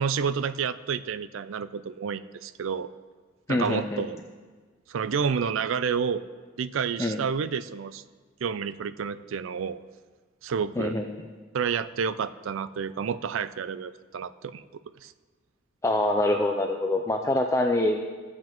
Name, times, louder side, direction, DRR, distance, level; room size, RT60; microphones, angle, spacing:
voice 1, 0.0-2.9 3.5-4.2 4.9-6.2 6.6-8.0 8.4-9.8 10.4-11.0 11.5-14.6 15.0-15.1, right 6 dB, 75° right, 14 dB, 0.4 m, -29 dB
voice 2, 3.5-4.0 7.0-7.2 10.8-11.1 15.8-18.0, left 1 dB, 15° left, 3 dB, 0.4 m, -25 dB
15.5 x 7.5 x 3.0 m, 1.5 s
head